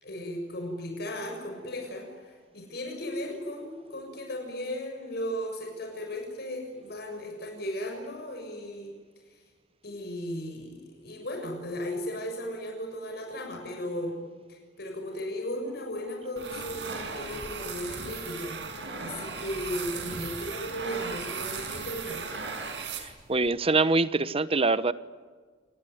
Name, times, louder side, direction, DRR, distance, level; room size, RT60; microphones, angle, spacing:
voice 1, 0.0-8.9 9.3-9.4 9.8-14.2 14.5-18.6 19.0-22.4, equal, 60° left, 2 dB, 6.8 m, -36 dB
sound 1, 16.4-23.5, right 4 dB, 75° right, 5.6 m, -37 dB
voice 2, 22.9-24.9, right 3 dB, 35° right, 15 dB, 1.0 m, -25 dB
28.5 x 20.0 x 9.4 m, 1.5 s
head